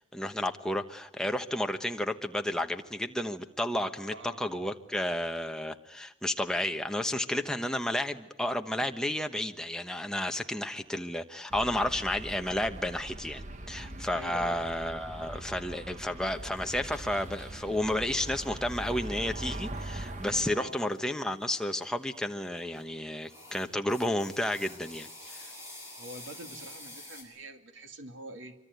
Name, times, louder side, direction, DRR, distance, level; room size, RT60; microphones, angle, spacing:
voice 1, 0.0-25.4, left 1 dB, 5° left, 5 dB, 1.1 m, -32 dB
voice 2, 4.0-4.4 14.1-14.6 20.5-20.8 26.0-28.6, right 1 dB, 85° right, 6 dB, 2.4 m, -45 dB
sound 1, 11.5-20.5, right 1 dB, 40° right, 1.2 m, -41 dB
sound 2, 16.2-22.8 23.2-27.2, left 1 dB, 15° right, 6.2 m, -51 dB
25.0 x 24.5 x 9.4 m, 0.86 s
head